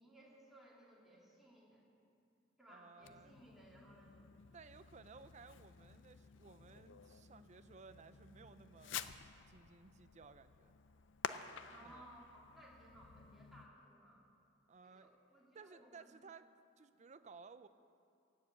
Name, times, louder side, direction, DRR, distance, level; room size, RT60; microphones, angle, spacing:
voice 1, 0.0-1.8 2.6-4.3 11.7-14.2 14.8-16.1, right 1 dB, ahead, -6 dB, 2.7 m, -61 dB
voice 2, 2.7-3.4 4.5-10.7 11.8-12.1 14.7-15.1 15.5-16.5 16.8-17.7, right 4 dB, 35° right, 12 dB, 0.5 m, -58 dB
Fireworks, 3.0-13.7, left 7 dB, 65° left, 0.5 m, -51 dB
17.0 x 7.5 x 8.1 m, 2.4 s
head